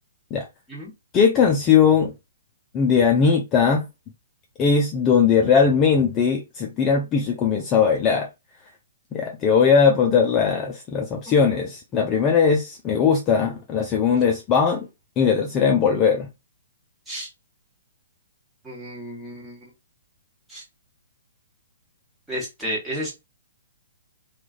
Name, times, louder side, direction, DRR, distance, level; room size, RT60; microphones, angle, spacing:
voice 1, 1.1-2.1 2.7-3.9 4.6-8.3 9.1-14.9 15.2-16.3, left 6 dB, 25° left, 0.5 m, -19 dB
voice 2, 18.6-19.7 20.5-20.6 22.3-23.1, equal, 5° right, 1.4 m, -32 dB
2.9 x 2.4 x 2.4 m
figure-of-eight pair, 125°, 0 cm